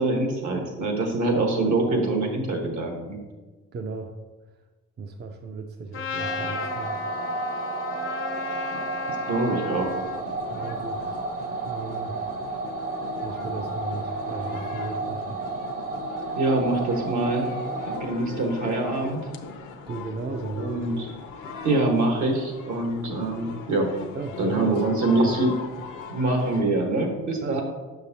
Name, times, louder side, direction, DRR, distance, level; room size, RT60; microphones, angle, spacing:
voice 1, 0.0-3.2 9.3-9.9 16.3-19.2 20.6-21.0 21.6-23.9 24.4-25.5 26.1-27.6, right 2 dB, 70° right, 2 dB, 1.4 m, -24 dB
voice 2, 3.7-4.1 5.0-7.0 7.8-7.9 10.5-11.2 11.6-12.2 13.2-15.4 19.9-20.8 24.1-24.8 25.1-25.4 27.4-27.6, right 4 dB, 35° right, 5 dB, 0.5 m, -35 dB
Trumpet, 5.9-10.2, left 4 dB, 45° left, 0.6 m, -33 dB
sound 1, 6.2-18.0, right 3 dB, 50° right, 1.1 m, -32 dB
sound 2, 9.7-26.6, left 6 dB, 80° left, 0.7 m, -40 dB
6.7 x 6.0 x 2.8 m, 1.3 s
cardioid pair, 90°, 30 cm